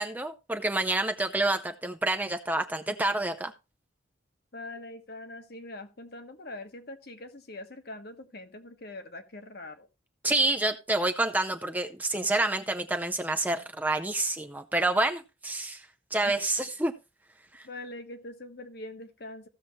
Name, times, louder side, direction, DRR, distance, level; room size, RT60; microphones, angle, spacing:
voice 1, 0.0-3.5 10.2-15.8 16.1-16.9, right 2 dB, 10° right, 6 dB, 0.5 m, -28 dB
voice 2, 4.5-9.9 16.2-16.4 17.6-19.5, left 2 dB, 55° left, 7 dB, 1.3 m, -43 dB
15.5 x 6.8 x 3.0 m, 0.27 s
head